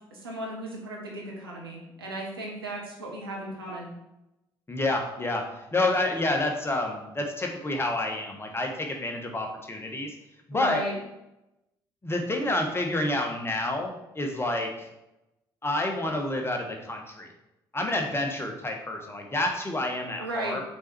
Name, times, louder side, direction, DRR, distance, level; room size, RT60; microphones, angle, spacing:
voice 1, 0.1-3.9 10.5-10.9 20.2-20.5, right 1 dB, 85° right, -3 dB, 1.2 m, -35 dB
voice 2, 4.7-5.4 5.7-10.1 10.5-10.8 12.0-14.9 15.6-17.3 17.7-20.6, left 2 dB, 20° left, 2 dB, 1.3 m, -29 dB
6.3 x 4.0 x 4.5 m, 0.92 s
figure-of-eight pair, 45°, 12 cm